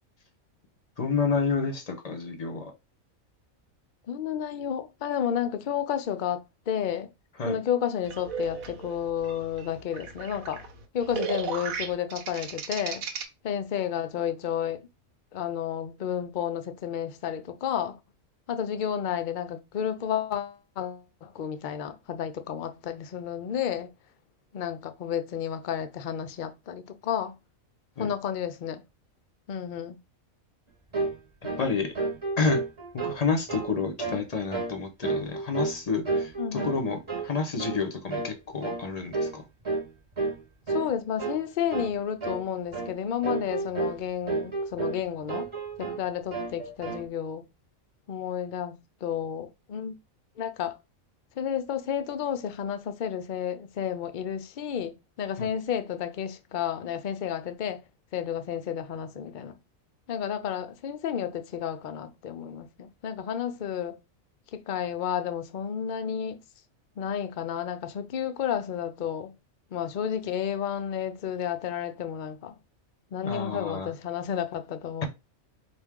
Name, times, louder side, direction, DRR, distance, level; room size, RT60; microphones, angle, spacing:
voice 1, 1.0-2.7 7.4-7.6 28.0-28.1 31.6-31.9 32.4-32.6 33.0-39.4 55.4-55.5 73.2-73.9, left 4 dB, 35° left, 0.8 m, -29 dB
voice 2, 4.1-7.1 7.5-10.6 10.9-13.0 13.4-14.9 15.3-18.0 18.5-23.9 24.5-27.4 28.0-28.8 29.5-30.0 36.4-36.7 40.7-45.5 45.8-47.4 48.1-50.0 50.4-50.8 51.4-57.8 58.1-59.6 60.1-64.0 64.5-66.4 67.0-69.3 69.7-72.5 73.1-75.0, left 9 dB, 70° left, 0.4 m, -31 dB
sound 1, 8.0-13.2, right 5 dB, 85° right, 1.2 m, -36 dB
sound 2, 30.9-31.2 31.4-31.7 31.9-33.2 33.5-33.7 34.0-34.2 34.5-34.8 35.0-35.8 36.0-36.8 37.1-37.3 37.6-37.8 38.1-38.3 38.6-38.8 39.1-39.4 39.6-39.9 40.2-40.4 40.7-40.9 41.2-41.4 41.7-42.0 42.2-42.4 42.7-42.9 43.2-44.0 44.3-45.0 45.3-46.0 46.3-47.0, right 3 dB, 25° right, 0.9 m, -31 dB
4.6 x 2.5 x 3.6 m
omnidirectional pair, 1.4 m